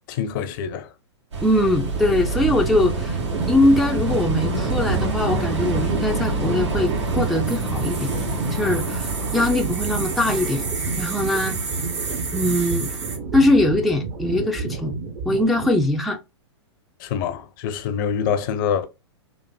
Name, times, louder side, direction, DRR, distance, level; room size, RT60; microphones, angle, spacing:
voice 1, 0.1-0.9 17.0-18.9, left 7 dB, 45° left, 0.6 m, -25 dB
sound 1, 1.3-13.2, right 2 dB, 85° right, 1.5 m, -27 dB
voice 2, 1.4-3.2 3.5-8.1 8.5-10.7 11.0-11.6 12.3-12.9 13.3-14.9 15.3-16.2, left 1 dB, ahead, 0.3 m, -21 dB
sound 2, 1.8-16.0, right 4 dB, 40° right, 0.7 m, -30 dB
4.0 x 2.5 x 2.2 m
hypercardioid pair, 120°, 15 cm